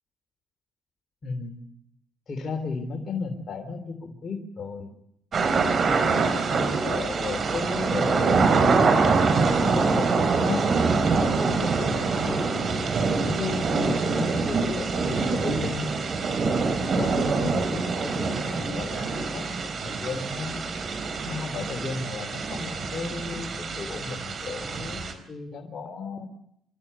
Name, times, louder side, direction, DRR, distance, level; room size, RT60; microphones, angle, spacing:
voice 1, 1.2-1.7 2.3-4.9 5.4-8.5 8.9-10.6 11.2-12.6 13.1-15.9 16.9-20.8 21.2-26.3, left 4 dB, 45° left, 2 dB, 3.4 m, -34 dB
sound 1, 5.3-25.1, right 4 dB, 50° right, 4.1 m, -25 dB
27.5 x 13.0 x 8.5 m, 0.77 s
cardioid pair, 90°, 0 cm